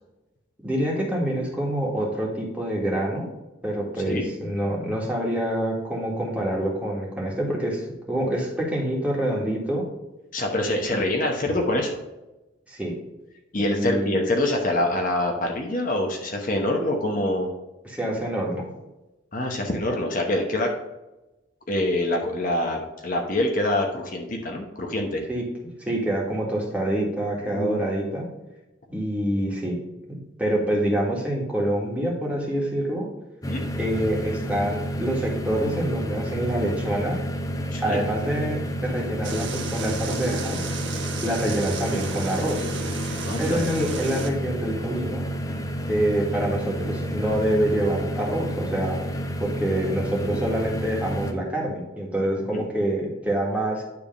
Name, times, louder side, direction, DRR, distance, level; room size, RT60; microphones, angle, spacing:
voice 1, 0.6-3.3 3.6-9.8 10.9-11.0 12.7-12.9 13.6-14.1 17.8-18.6 25.3-25.4 25.8-28.3 28.9-29.8 30.1-33.1 33.8-37.2 37.8-40.6 41.2-42.7 43.4-45.3 45.9-49.0 49.4-53.8, right 1 dB, 5° right, -3 dB, 1.7 m, -26 dB
voice 2, 10.3-12.0 13.5-17.5 19.3-20.7 21.7-25.2 27.4-27.8 33.5-33.7 37.7-38.0 43.2-43.6 52.5-52.6, left 1 dB, 45° left, 2 dB, 0.9 m, -25 dB
sound 1, 33.4-51.3, equal, 20° left, 0.6 m, -30 dB
sound 2, 39.2-44.3, right 4 dB, 75° right, 1.0 m, -34 dB
9.7 x 3.4 x 5.2 m, 1.0 s
head